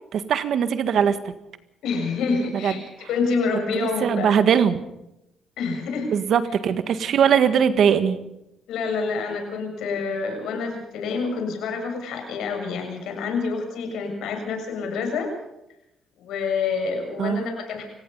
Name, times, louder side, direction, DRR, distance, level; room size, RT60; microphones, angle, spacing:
voice 1, 0.1-1.2 2.6-2.7 3.7-4.8 6.1-8.2 17.2-17.4, right 8 dB, 70° right, 11 dB, 1.6 m, -20 dB
voice 2, 1.8-4.3 5.6-6.1 8.7-15.3 16.2-17.8, left 4 dB, 85° left, 4 dB, 7.3 m, -27 dB
29.5 x 17.0 x 5.6 m, 0.86 s
cardioid pair, 90°, 0 cm